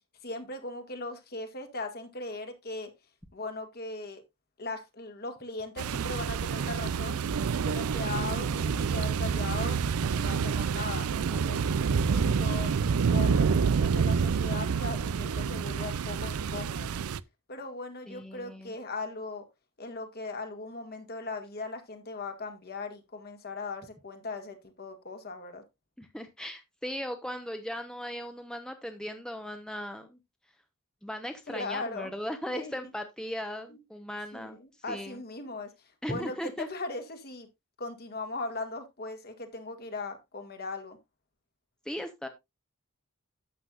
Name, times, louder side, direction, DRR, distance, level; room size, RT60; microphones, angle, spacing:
voice 1, 0.2-2.9 3.3-4.2 4.6-7.2 7.5-9.8 10.1-11.6 12.1-12.8 13.1-16.9 17.5-19.4 19.8-25.6 31.5-32.1 32.5-32.7 33.7-33.8 34.3-35.7 36.1-37.5 37.8-41.0, left 3 dB, 45° left, 2.0 m, -39 dB
sound 1, 5.8-17.2, right 6 dB, 85° right, 0.5 m, -28 dB
voice 2, 18.1-18.7 26.0-30.2 31.0-34.6 34.9-35.2 36.0-36.7 41.9-42.3, equal, 5° left, 0.9 m, -37 dB
12.0 x 8.2 x 2.5 m
head